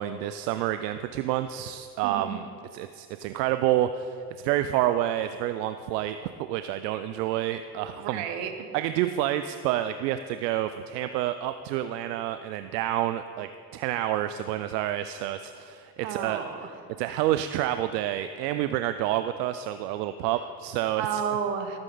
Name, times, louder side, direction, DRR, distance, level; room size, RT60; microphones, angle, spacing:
voice 1, 0.0-2.5 2.7-8.2 8.7-16.4 17.0-21.2, right 12 dB, 85° right, 10 dB, 0.5 m, -28 dB
voice 2, 2.0-2.4 8.0-8.5 16.0-16.7 21.0-21.8, right 7 dB, 70° right, 6 dB, 1.4 m, -31 dB
15.0 x 8.8 x 3.9 m, 2.4 s
supercardioid pair, 80°, 47 cm